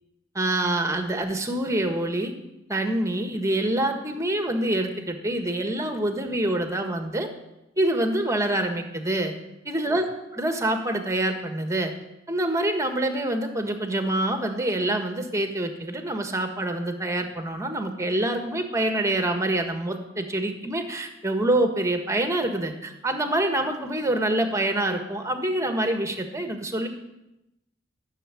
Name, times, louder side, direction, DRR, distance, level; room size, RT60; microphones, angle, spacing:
voice 1, 0.3-2.3 2.7-7.3 7.8-9.3 9.6-10.1 10.4-11.9 12.3-26.9, right 1 dB, 15° right, 6 dB, 1.6 m, -26 dB
14.5 x 7.2 x 9.8 m, 0.92 s
head